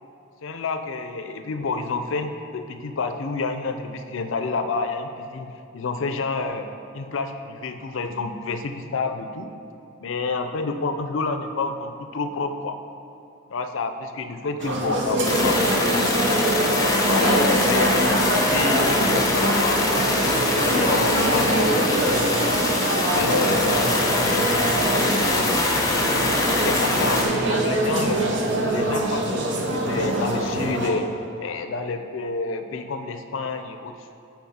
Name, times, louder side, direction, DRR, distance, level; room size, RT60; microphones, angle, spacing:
voice 1, 0.4-6.7 6.9-9.5 10.0-12.8 13.5-16.1 16.9-22.2 23.1-23.9 24.8-28.3 28.7-31.1 31.4-34.0, left 4 dB, 70° left, 8 dB, 0.5 m, -29 dB
sound 1, 14.6-30.9, right 1 dB, 60° right, 0.8 m, -24 dB
sound 2, 15.2-27.3, left 2 dB, 15° left, 0.7 m, -23 dB
8.5 x 4.0 x 4.2 m, 2.7 s
head